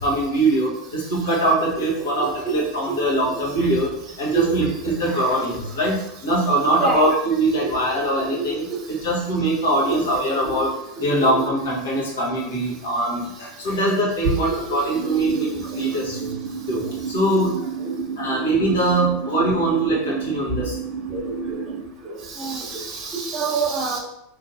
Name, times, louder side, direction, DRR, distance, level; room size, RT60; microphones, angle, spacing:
voice 1, 0.0-3.9 4.2-10.7 11.0-16.3 16.7-17.6 18.2-20.8, right 1 dB, 80° left, -4 dB, 1.3 m, -22 dB
voice 2, 1.8-2.6 3.2-3.3 4.3-4.6 6.8-7.1 7.6-8.0 8.3-8.8 9.8-10.2 10.5-10.6 14.7-15.2 15.7-15.9 17.3-17.5 18.3-18.4 18.6-18.8 21.1-21.6 22.4-24.0, right 4 dB, 30° right, 0 dB, 0.9 m, -27 dB
sound 1, 14.9-21.8, right 7 dB, 85° right, 0.4 m, -31 dB
4.2 x 2.7 x 2.7 m, 0.79 s
hypercardioid pair, 110°, 0 cm